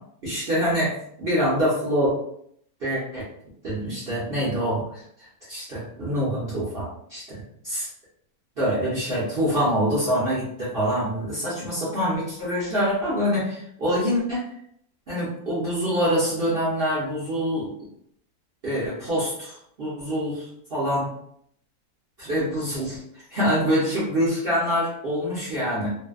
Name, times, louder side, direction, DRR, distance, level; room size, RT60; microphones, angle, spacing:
voice 1, 0.2-0.9 1.2-2.1 2.8-3.2 3.6-5.0 5.5-7.9 8.6-14.5 15.1-17.7 18.6-21.1 22.2-25.9, equal, 50° right, -9 dB, 0.8 m, -25 dB
2.6 x 2.1 x 2.3 m, 0.68 s
omnidirectional pair, 1.6 m